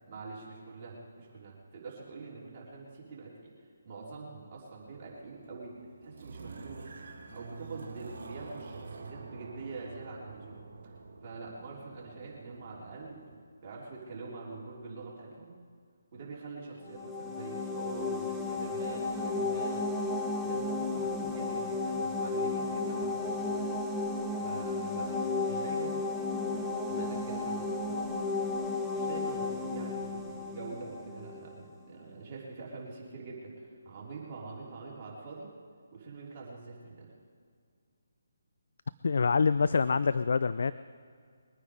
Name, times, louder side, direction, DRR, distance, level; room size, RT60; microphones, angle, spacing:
voice 1, 0.0-3.5 3.8-6.9 7.3-10.9 11.2-13.2 13.6-15.6 16.1-19.9 20.4-23.7 24.4-26.0 26.3-28.2 28.9-35.5 35.9-37.1, right 3 dB, 35° right, -5 dB, 3.6 m, -45 dB
sound 1, 4.8-13.3, right 4 dB, 60° right, 2.5 m, -47 dB
sound 2, 16.9-31.5, left 3 dB, 5° left, 1.0 m, -33 dB
voice 2, 39.0-40.7, left 5 dB, 65° left, 15 dB, 0.4 m, -26 dB
22.5 x 9.4 x 4.9 m, 2.1 s
figure-of-eight pair, 150°, 0 cm